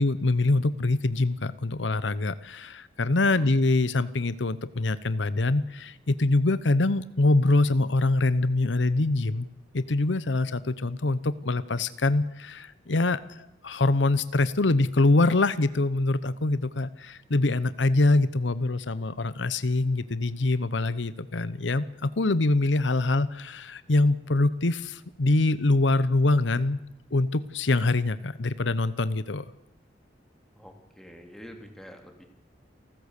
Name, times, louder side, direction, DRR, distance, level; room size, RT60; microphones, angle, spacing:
voice 1, 0.0-9.5 9.7-26.8 27.1-29.5, left 2 dB, 90° left, 15 dB, 0.9 m, -24 dB
voice 2, 30.5-32.2, equal, 5° left, 3 dB, 3.2 m, -46 dB
29.0 x 14.0 x 8.3 m, 0.91 s
head